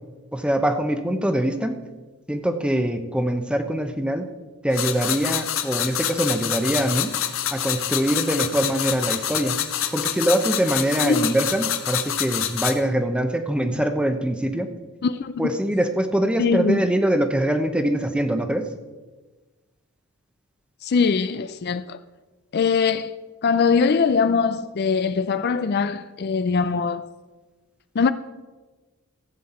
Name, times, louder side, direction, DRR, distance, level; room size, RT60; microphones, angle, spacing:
voice 1, 0.3-1.8 2.3-4.2 4.6-7.1 7.5-9.6 9.9-14.7 15.4-18.7, right 1 dB, 5° right, 0.8 m, -23 dB
sound 1, 4.7-12.7, left 10 dB, 65° left, 0.9 m, -27 dB
voice 2, 11.0-11.3 15.0-15.5 16.4-16.9 20.8-22.0 22.5-23.1 23.4-27.1 27.9-28.1, left 5 dB, 50° left, 0.4 m, -22 dB
15.0 x 8.5 x 4.3 m
head